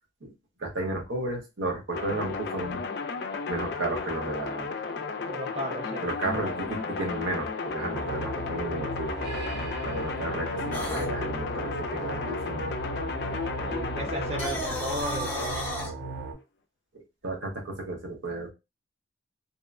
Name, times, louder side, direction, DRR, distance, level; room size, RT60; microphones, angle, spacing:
voice 1, 0.6-2.8 3.5-4.7 6.0-9.1 9.8-12.7 14.7-14.8 16.9-18.5, right 2 dB, 85° right, 1 dB, 0.9 m, -33 dB
sound 1, 1.9-15.7, left 4 dB, 55° left, 0.3 m, -34 dB
voice 2, 5.2-6.1 6.3-6.5 13.6-15.8, right 1 dB, 30° right, 0 dB, 0.6 m, -35 dB
sound 2, 7.9-16.3, right 2 dB, 55° right, 0.9 m, -36 dB
sound 3, 10.7-11.1 14.3-15.9, equal, 10° left, 0.6 m, -33 dB
2.8 x 2.1 x 2.4 m, 0.25 s
head